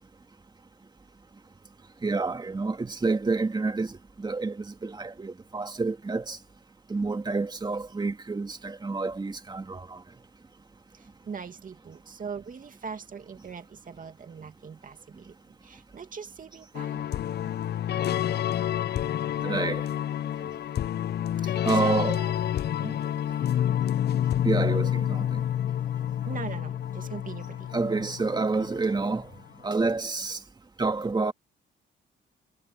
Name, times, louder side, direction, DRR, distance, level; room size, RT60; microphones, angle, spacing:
voice 1, 2.0-6.4 6.9-10.0 19.4-19.9 21.6-22.2 24.4-25.4 27.7-29.3 29.6-30.4 30.8-31.3, right 3 dB, 20° right, 2.4 m, -28 dB
voice 2, 10.9-15.4 15.6-17.0 21.4-22.3 22.8-23.1 26.2-27.7, right 6 dB, 45° right, 2.4 m, -40 dB
sound 1, 16.7-29.3, left 10 dB, 55° left, 0.6 m, -28 dB
cardioid pair, 90°, 20 cm